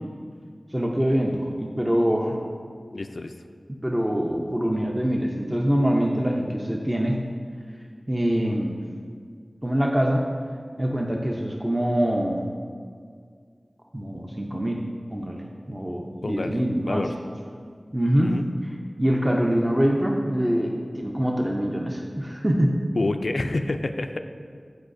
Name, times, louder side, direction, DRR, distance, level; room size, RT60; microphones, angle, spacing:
voice 1, 0.7-2.4 3.8-7.2 8.1-8.8 9.6-10.2 10.8-12.4 13.9-14.8 15.1-17.0 17.9-18.3 19.0-22.7, equal, 20° right, 0 dB, 0.7 m, -24 dB
voice 2, 2.9-3.3 16.2-16.6 16.9-17.1 18.2-18.4 23.0-24.2, left 2 dB, 75° left, 7 dB, 0.3 m, -28 dB
13.5 x 4.8 x 2.6 m, 2.1 s
wide cardioid pair, 40°, 0 cm